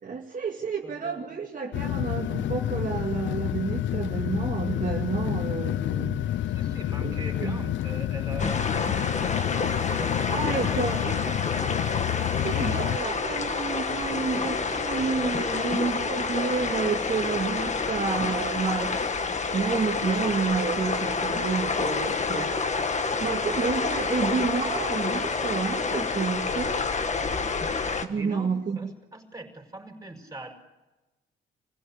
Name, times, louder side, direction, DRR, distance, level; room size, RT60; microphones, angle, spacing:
voice 1, 0.0-6.4 7.0-7.6 10.3-11.3 12.4-22.5 22.8-26.8 28.0-28.9, right 5 dB, 40° right, -1 dB, 2.3 m, -30 dB
voice 2, 0.8-1.5 6.5-11.9 28.1-30.5, right 2 dB, 15° right, 3 dB, 5.4 m, -42 dB
sound 1, 1.7-13.0, left 12 dB, 70° left, 0.6 m, -29 dB
sound 2, 8.4-28.1, left 4 dB, 35° left, 1.8 m, -28 dB
25.0 x 16.0 x 8.7 m, 1.1 s
cardioid pair, 90°, 20 cm